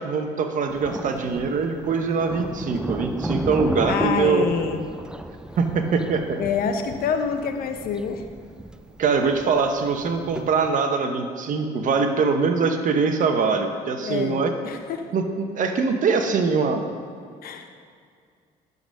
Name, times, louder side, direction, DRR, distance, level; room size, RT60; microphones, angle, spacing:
voice 1, 0.0-4.4 5.6-6.4 9.0-14.5 15.1-15.2 15.6-16.8, right 5 dB, 50° right, 5 dB, 1.1 m, -23 dB
Thunder, 0.7-10.7, right 1 dB, 5° right, 0.4 m, -34 dB
voice 2, 3.9-4.9 6.4-8.2 11.6-11.9 14.0-15.1 17.4-17.7, left 6 dB, 60° left, 6 dB, 1.0 m, -27 dB
11.0 x 4.1 x 6.3 m, 2.2 s
supercardioid pair, 75°, 17 cm